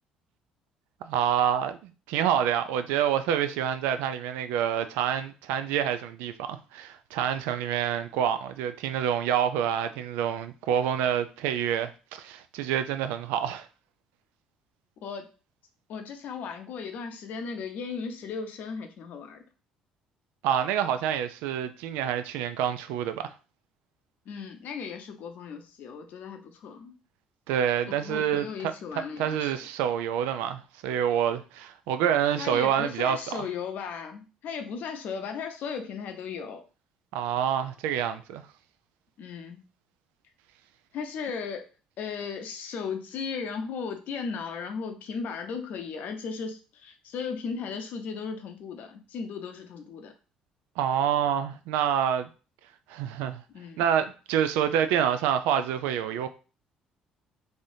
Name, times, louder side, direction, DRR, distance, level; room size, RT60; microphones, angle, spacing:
voice 1, 1.0-13.7 20.4-23.3 27.5-28.7 29.2-33.5 37.1-38.4 50.8-52.3 52.9-53.4 53.8-56.3, right 9 dB, 75° right, 0.3 m, -27 dB
voice 2, 15.9-19.4 24.3-26.9 27.8-29.5 32.4-36.6 39.2-39.6 40.9-41.7 42.0-50.1 53.5-53.8, left 5 dB, 65° left, 0.6 m, -36 dB
3.3 x 2.6 x 2.7 m
hypercardioid pair, 60°, 3 cm